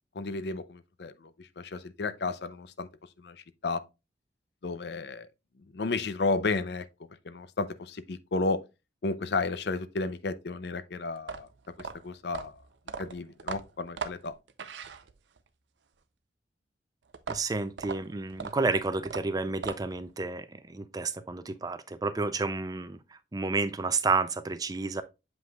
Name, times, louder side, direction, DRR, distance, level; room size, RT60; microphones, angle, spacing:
voice 1, 0.1-2.9 3.2-3.8 4.6-5.3 5.7-6.9 7.2-8.6 9.0-11.5 11.8-12.6 13.0-14.3, left 3 dB, 65° left, 0.5 m, -32 dB
sound 1, 11.2-15.5 17.1-20.1, right 5 dB, 80° right, 0.6 m, -39 dB
voice 2, 17.3-25.0, right 3 dB, 20° right, 0.4 m, -30 dB
7.7 x 5.2 x 2.3 m
head